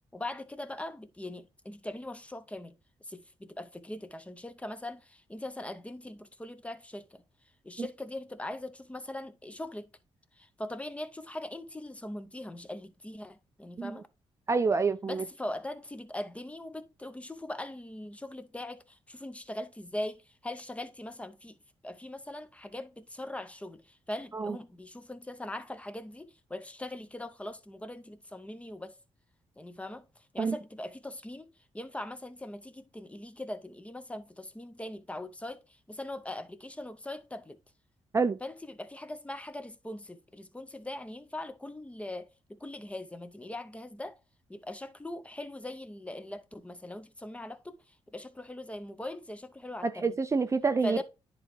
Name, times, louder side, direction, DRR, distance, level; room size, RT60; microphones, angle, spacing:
voice 1, 0.1-2.8 3.0-7.2 7.6-9.9 10.4-14.1 15.1-21.6 21.8-28.9 29.6-37.6 38.4-44.2 44.5-50.1 50.8-51.0, left 1 dB, 10° left, 0.7 m, -41 dB
voice 2, 14.5-15.2 24.3-24.6 30.4-30.6 38.1-38.4 49.8-51.0, right 4 dB, 30° right, 0.4 m, -27 dB
10.0 x 3.8 x 3.2 m
cardioid pair, 85°, 11 cm